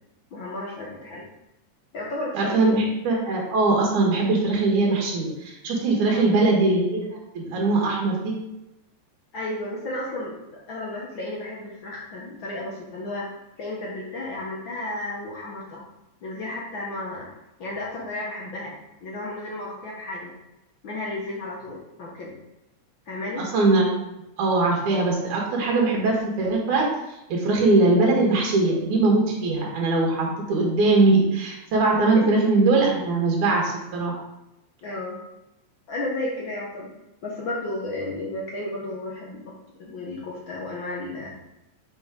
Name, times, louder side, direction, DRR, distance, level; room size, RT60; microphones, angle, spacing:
voice 1, 0.3-1.2 1.9-2.9 6.1-6.3 9.3-13.3 13.6-15.9 16.2-17.3 17.6-20.3 20.8-22.4 23.1-23.5 32.1-32.5 34.8-35.2 35.9-36.9 37.2-41.3, left 2 dB, 60° left, -3 dB, 1.3 m, -33 dB
voice 2, 2.3-7.1 7.3-8.3 23.5-23.9 24.4-26.9 27.3-34.1, right 3 dB, 80° right, -2 dB, 3.0 m, -21 dB
6.3 x 6.2 x 3.6 m, 0.92 s
omnidirectional pair, 3.4 m